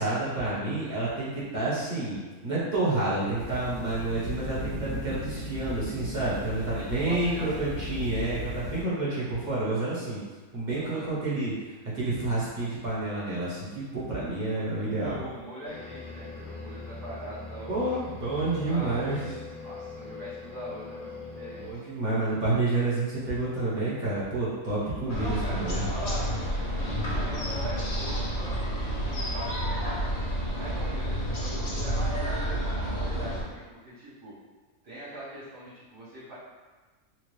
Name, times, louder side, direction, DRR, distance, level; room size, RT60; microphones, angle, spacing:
voice 1, 0.0-2.2 2.4-10.2 10.5-11.5 11.9-15.2 17.7-19.2 21.6-25.8, right 2 dB, 35° right, -9 dB, 1.2 m, -29 dB
sound 1, 3.4-8.8, left 1 dB, 55° right, 1.6 m, -37 dB
voice 2, 6.7-7.8 10.7-11.3 14.5-18.0 18.7-21.8 24.8-26.3 26.7-30.0 30.5-34.3 34.8-36.4, right 1 dB, 85° right, -12 dB, 1.8 m, -42 dB
sound 2, 15.6-21.7, left 4 dB, 70° left, 1.6 m, -41 dB
sound 3, 25.1-33.4, equal, 50° left, 0.4 m, -30 dB
4.4 x 2.4 x 3.2 m, 1.3 s
omnidirectional pair, 1.6 m